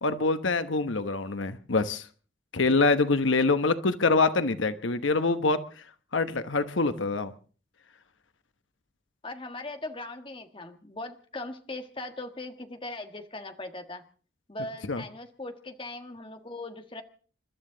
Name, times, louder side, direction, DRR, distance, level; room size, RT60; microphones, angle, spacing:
voice 1, 0.0-2.1 2.5-5.6 6.1-7.3 14.9-15.0, left 3 dB, 85° left, 11 dB, 1.0 m, -25 dB
voice 2, 9.2-14.0 14.5-17.0, left 2 dB, 25° left, 6 dB, 1.5 m, -39 dB
28.5 x 12.5 x 3.9 m, 0.41 s
head